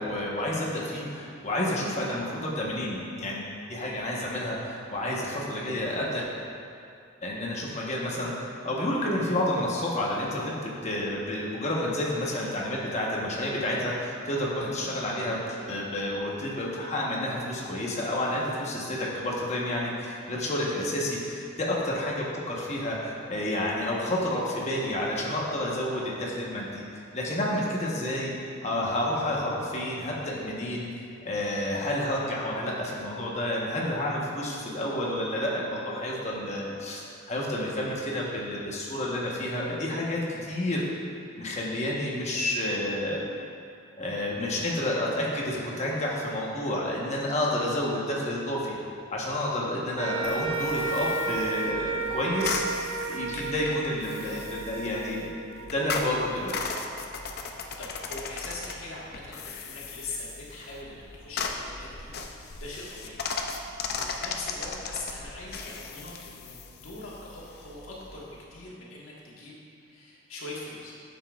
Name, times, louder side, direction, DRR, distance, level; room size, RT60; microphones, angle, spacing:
voice 1, 0.0-6.3 7.2-26.8 27.1-28.3 28.6-30.9 31.2-40.8 41.4-43.2 44.0-48.8 49.1-52.6 53.0-55.3 55.7-56.6, left 1 dB, 35° left, -3 dB, 1.1 m, -30 dB
sound 1, 49.9-56.4, right 4 dB, 80° right, 0.5 m, -33 dB
sound 2, 50.2-68.4, left 4 dB, 50° left, 0.5 m, -38 dB
voice 2, 57.4-63.2 63.5-68.2 68.5-70.9, left 2 dB, 90° left, -5 dB, 1.5 m, -42 dB
9.4 x 7.0 x 2.4 m, 2.5 s
head